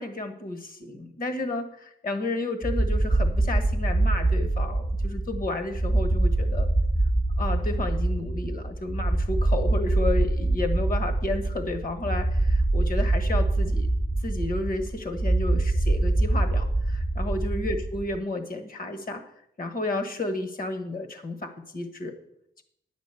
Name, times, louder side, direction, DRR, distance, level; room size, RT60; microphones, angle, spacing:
voice 1, 0.0-6.7 7.4-13.9 14.2-19.2 19.6-22.2, left 2 dB, 50° left, 7 dB, 1.4 m, -32 dB
sound 1, 2.6-18.2, right 2 dB, 5° right, 0.3 m, -24 dB
10.5 x 5.2 x 8.3 m, 0.73 s
wide cardioid pair, 150°, 19 cm